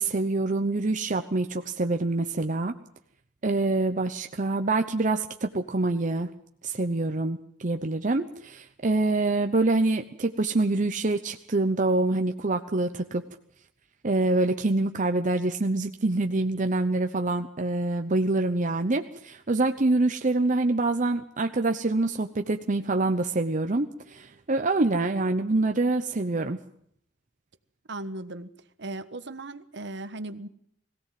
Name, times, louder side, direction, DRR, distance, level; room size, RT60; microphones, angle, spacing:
voice 1, 0.0-2.7 3.4-6.3 6.6-13.2 14.0-26.6, right 2 dB, 45° right, 6 dB, 0.9 m, -26 dB
voice 2, 27.9-28.5 28.8-30.5, right 2 dB, 65° right, 11 dB, 1.3 m, -37 dB
21.5 x 16.5 x 7.6 m, 0.68 s
head